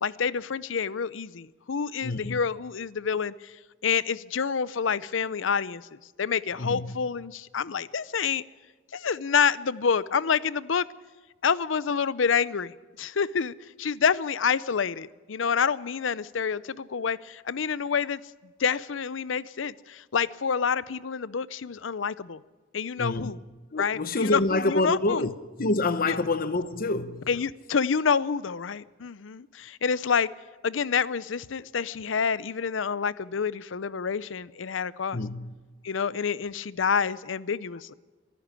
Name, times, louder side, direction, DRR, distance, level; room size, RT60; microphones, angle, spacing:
voice 1, 0.0-3.3 3.8-5.8 6.2-8.4 8.9-10.9 11.4-18.2 18.6-22.4 22.7-23.4 23.8-25.3 26.1-26.2 27.3-30.3 30.6-35.2 35.8-37.9, left 6 dB, 70° left, 0.6 m, -28 dB
voice 2, 2.0-2.4 6.6-6.9 23.0-23.3 23.7-25.3 25.6-27.3 35.1-35.5, left 2 dB, 50° left, 1.0 m, -27 dB
23.5 x 11.5 x 9.8 m
head